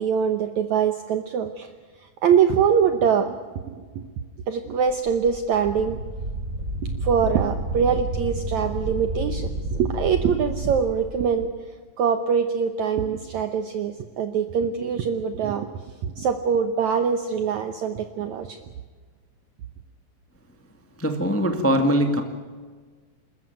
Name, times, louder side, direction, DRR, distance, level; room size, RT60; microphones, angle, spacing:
voice 1, 0.0-1.7 2.2-4.0 4.5-6.0 6.8-11.5 12.0-15.7 16.0-18.6, right 7 dB, 70° right, 8 dB, 1.9 m, -23 dB
Wind, 4.9-11.3, right 1 dB, 20° right, 3.4 m, -31 dB
voice 2, 21.0-22.2, equal, 15° left, 5 dB, 0.5 m, -21 dB
28.0 x 14.0 x 9.3 m, 1.5 s
omnidirectional pair, 4.3 m